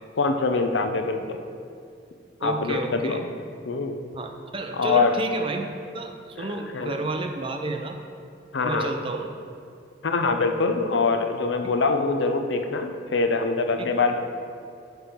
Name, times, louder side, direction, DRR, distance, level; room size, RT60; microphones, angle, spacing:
voice 1, 0.2-1.4 2.4-3.2 3.7-4.0 4.7-5.2 6.4-6.9 8.5-8.9 10.0-14.2, left 4 dB, 75° left, 5 dB, 0.6 m, -24 dB
voice 2, 2.4-3.2 4.1-5.6 5.9-8.0 8.6-9.3 13.8-13.9, right 3 dB, 30° right, 5 dB, 0.5 m, -30 dB
9.5 x 3.4 x 5.9 m, 2.4 s
head